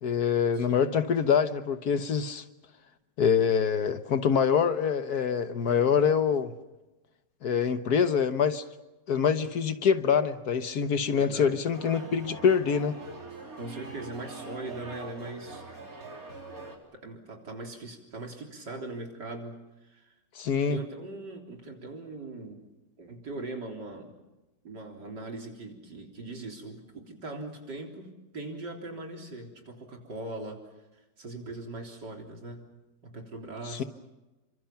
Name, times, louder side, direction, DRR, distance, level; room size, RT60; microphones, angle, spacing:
voice 1, 0.0-2.4 3.2-6.5 7.4-8.6 9.1-13.0 20.4-20.8 33.7-33.8, left 7 dB, 60° left, 1.5 m, -25 dB
voice 2, 0.5-0.9 11.1-11.6 13.6-15.6 16.9-20.1 20.7-22.6 23.0-24.1 24.6-28.1 28.3-30.6 31.2-32.7 33.0-33.9, right 2 dB, 70° right, 4.3 m, -40 dB
sound 1, 11.7-16.8, right 3 dB, 50° right, 4.0 m, -43 dB
29.5 x 25.0 x 5.9 m
omnidirectional pair, 1.9 m